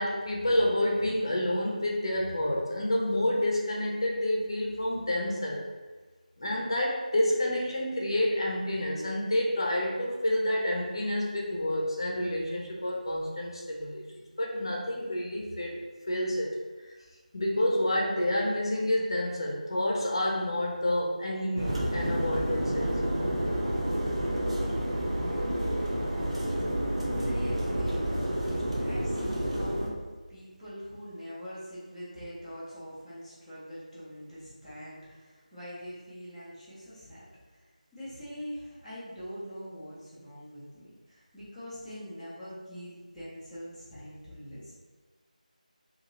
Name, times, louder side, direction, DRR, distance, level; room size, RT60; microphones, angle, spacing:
voice 1, 0.0-5.6 6.4-14.0 14.4-15.7 16.1-16.6 17.3-22.9, left 1 dB, 35° left, -2 dB, 0.7 m, -29 dB
sound 1, 21.6-29.9, right 1 dB, 50° right, 0.8 m, -29 dB
voice 2, 27.2-28.5 28.8-30.0 30.3-37.3 37.5-37.6 37.9-44.7, equal, ahead, -20 dB, 0.5 m, -43 dB
2.9 x 2.8 x 3.9 m, 1.3 s
figure-of-eight pair, 165°, 4 cm